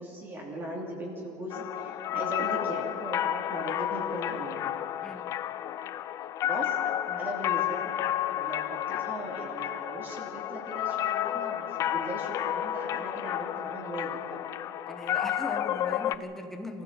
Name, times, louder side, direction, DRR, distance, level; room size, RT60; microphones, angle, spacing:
voice 1, 0.0-4.7 6.4-6.8 7.2-14.2, right 1 dB, 20° right, -1 dB, 2.7 m, -39 dB
sound 1, 1.5-16.1, left 12 dB, 30° left, 0.4 m, -31 dB
voice 2, 14.9-16.8, left 1 dB, 5° left, 4 dB, 1.5 m, -40 dB
25.0 x 15.0 x 7.5 m, 2.9 s
cardioid pair, 165°, 10 cm